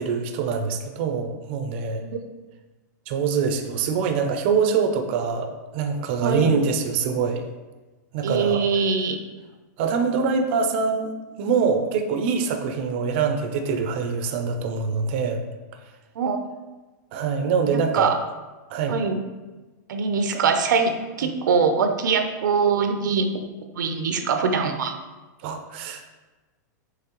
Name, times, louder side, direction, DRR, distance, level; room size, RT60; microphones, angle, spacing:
voice 1, 0.0-2.0 3.1-7.5 8.1-8.6 9.8-11.1 11.4-15.4 17.1-18.1 18.7-19.0 25.4-26.1, right 5 dB, 35° right, 5 dB, 0.4 m, -24 dB
voice 2, 6.2-6.5 8.2-9.2 16.2-16.4 17.7-18.2 18.9-19.2 19.9-23.4 23.8-24.9, right 5 dB, 85° right, 7 dB, 0.6 m, -23 dB
5.6 x 3.1 x 3.0 m, 1.2 s
supercardioid pair, 170°, 10 cm